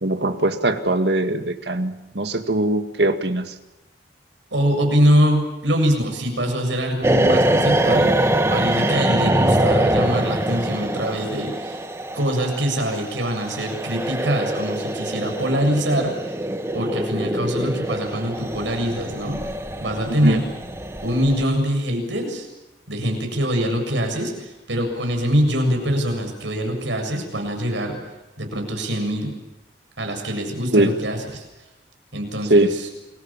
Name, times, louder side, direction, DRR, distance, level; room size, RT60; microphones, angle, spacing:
voice 1, 0.0-3.5 9.3-9.4 20.1-20.4 30.7-30.9 32.5-32.7, right 1 dB, 65° right, 7 dB, 2.1 m, -21 dB
voice 2, 4.5-11.8 12.1-16.3 16.7-19.4 19.8-20.5 21.0-22.5 22.9-28.0 28.4-29.3 30.0-31.4 32.1-32.9, equal, 85° right, 3 dB, 7.3 m, -23 dB
sound 1, 7.0-21.4, right 1 dB, 15° right, 1.6 m, -24 dB
29.0 x 22.5 x 7.5 m, 1.0 s
head